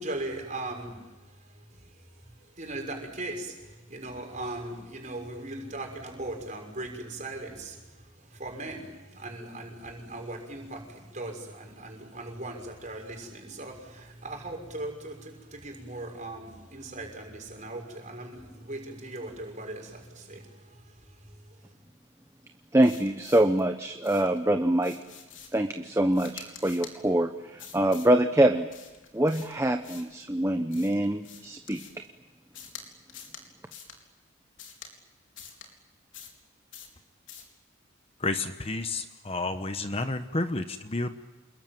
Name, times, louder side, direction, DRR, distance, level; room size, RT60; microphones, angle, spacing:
voice 1, 0.0-21.7, right 2 dB, 35° right, 2 dB, 6.3 m, -39 dB
voice 2, 22.7-25.0 25.5-28.7 29.1-31.8, right 1 dB, 15° right, 6 dB, 1.0 m, -24 dB
sound 1, 22.8-23.6 24.0-24.4 24.8-25.7 26.1-27.0 27.6-28.1 28.7-30.2 30.7-32.1 32.5-32.8 33.1-33.4 33.7-34.0 34.6-34.9 35.4-35.7 36.1-36.4 36.7-37.0 37.3-37.5, left 7 dB, 65° left, 4.3 m, -47 dB
voice 3, 38.2-41.1, left 2 dB, 30° left, 9 dB, 1.1 m, -30 dB
28.0 x 22.0 x 9.2 m, 1.1 s
head